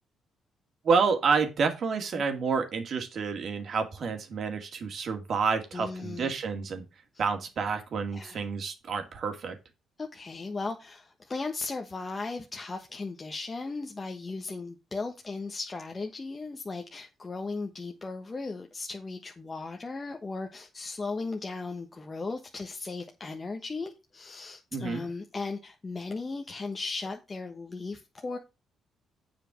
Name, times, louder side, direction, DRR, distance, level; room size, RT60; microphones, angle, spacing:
voice 1, 0.8-6.8 7.2-9.6 24.7-25.0, right 5 dB, 55° right, 2.3 m, -29 dB
voice 2, 5.7-6.3 8.1-8.4 10.0-28.4, left 3 dB, 30° left, 1.2 m, -37 dB
7.5 x 5.1 x 6.3 m
cardioid pair, 90°, 0 cm